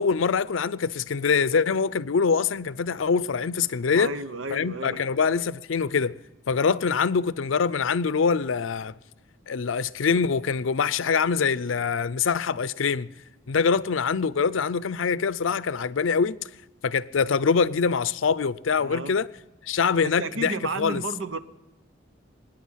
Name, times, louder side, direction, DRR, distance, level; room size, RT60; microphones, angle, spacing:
voice 1, 0.0-4.1 4.5-6.2 6.5-8.9 9.5-13.1 13.5-16.4 16.8-19.3 19.7-21.0, left 5 dB, 90° left, 0.5 m, -24 dB
voice 2, 3.9-5.0 18.8-19.2 20.0-21.4, right 2 dB, 85° right, 0.8 m, -32 dB
25.0 x 10.0 x 5.7 m
head